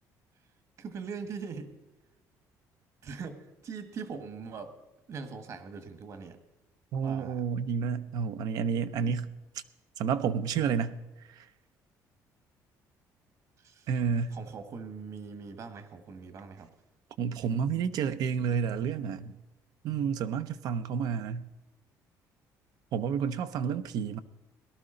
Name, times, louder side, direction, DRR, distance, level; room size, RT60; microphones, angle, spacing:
voice 1, 0.8-1.7 3.0-3.4 3.6-4.7 5.1-6.4 7.0-7.4 13.6-13.7 14.3-16.7, right 5 dB, 50° right, 9 dB, 1.5 m, -41 dB
voice 2, 6.9-9.3 10.0-11.0 11.3-11.5 13.9-14.4 17.2-19.3 19.8-21.5 22.9-24.2, right 7 dB, 70° right, 11 dB, 0.6 m, -30 dB
18.0 x 12.0 x 3.9 m, 1.0 s
cardioid pair, 130°, 7 cm